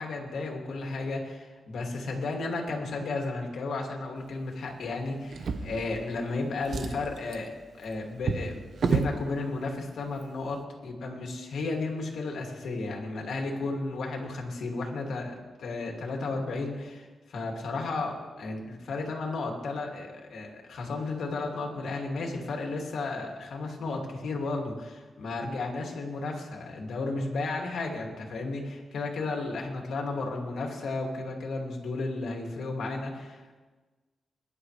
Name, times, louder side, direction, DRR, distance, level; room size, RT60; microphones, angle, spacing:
voice 1, 0.0-33.6, left 3 dB, 80° left, 1 dB, 2.6 m, -33 dB
Drawer open or close, 5.3-6.3 6.6-9.2 10.1-10.2 10.6-10.7, right 5 dB, 60° right, 0.9 m, -31 dB
22.0 x 11.0 x 3.3 m, 1.3 s
wide cardioid pair, 115°, 0 cm